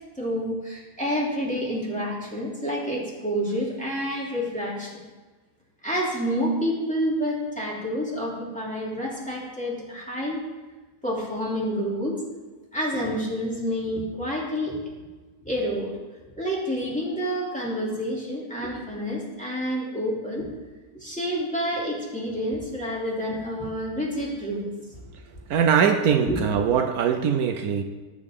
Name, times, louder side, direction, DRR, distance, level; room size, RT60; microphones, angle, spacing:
voice 1, 0.2-5.0 5.8-10.4 11.0-12.2 12.7-14.8 15.4-15.9 16.4-20.4 20.9-24.7 26.3-26.4, equal, 5° left, -5 dB, 2.8 m, -28 dB
voice 2, 25.5-27.8, right 7 dB, 75° right, 7 dB, 1.2 m, -21 dB
18.5 x 8.0 x 3.7 m, 1.3 s
omnidirectional pair, 1.6 m